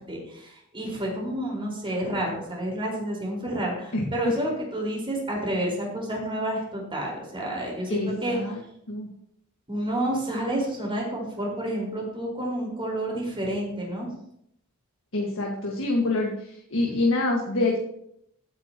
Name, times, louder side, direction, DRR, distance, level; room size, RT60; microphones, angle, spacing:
voice 1, 0.1-8.4 9.7-14.1, right 1 dB, 25° right, -2 dB, 4.6 m, -29 dB
voice 2, 7.9-8.6 8.9-9.1 15.1-17.8, left 2 dB, 60° left, -1 dB, 1.9 m, -26 dB
15.0 x 9.8 x 3.0 m, 0.72 s
head